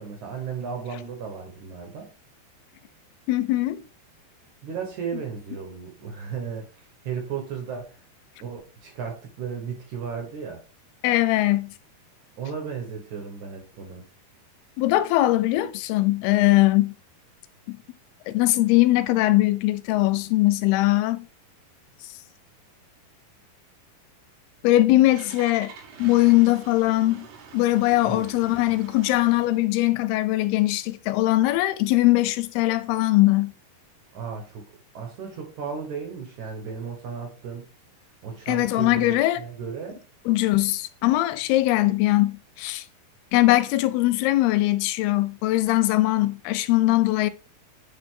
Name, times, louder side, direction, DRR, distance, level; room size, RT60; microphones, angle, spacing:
voice 1, 0.0-2.1 4.6-8.0 8.4-10.6 12.4-14.1 28.0-28.3 34.1-34.7 34.9-37.7 38.2-40.0, right 6 dB, 60° right, 2.2 m, -35 dB
voice 2, 3.3-3.8 11.0-11.7 14.8-17.0 17.7-17.8 18.3-21.3 24.6-25.7 26.0-27.3 27.5-33.5 38.5-39.4 40.3-42.8 43.3-47.3, left 17 dB, 90° left, 2.6 m, -21 dB
Engine starting, 24.5-29.7, right 6 dB, 85° right, 3.2 m, -46 dB
8.6 x 3.7 x 3.7 m
omnidirectional pair, 4.5 m